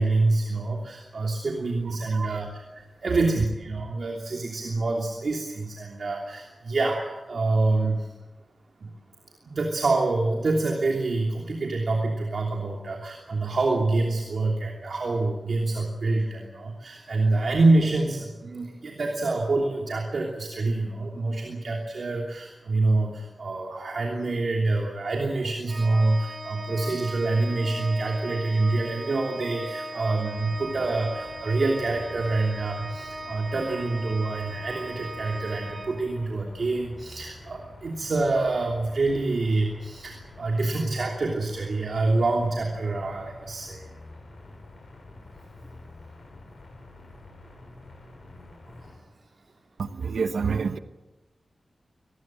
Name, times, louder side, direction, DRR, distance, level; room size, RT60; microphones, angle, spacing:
voice 1, 0.0-8.1 8.8-8.9 9.4-43.8 48.8-48.9, right 2 dB, 60° right, 1 dB, 3.1 m, -26 dB
Organ, 25.7-36.5, right 1 dB, 35° right, 4.5 m, -38 dB
sound 1, 30.3-49.0, left 2 dB, 65° left, 7.3 m, -47 dB
voice 2, 49.8-50.8, right 5 dB, 85° right, 10 dB, 1.1 m, -28 dB
25.0 x 20.0 x 7.7 m, 1.1 s
wide cardioid pair, 105°, 0 cm